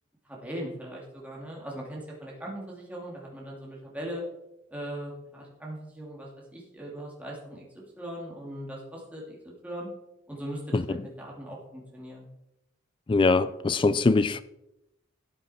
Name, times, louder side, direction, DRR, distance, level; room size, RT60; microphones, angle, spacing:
voice 1, 0.2-4.2 4.7-7.6 8.0-9.9 10.3-12.2, right 1 dB, 5° right, 2.6 m, -39 dB
voice 2, 13.1-14.4, left 3 dB, 25° left, 0.3 m, -22 dB
13.0 x 8.0 x 4.3 m
head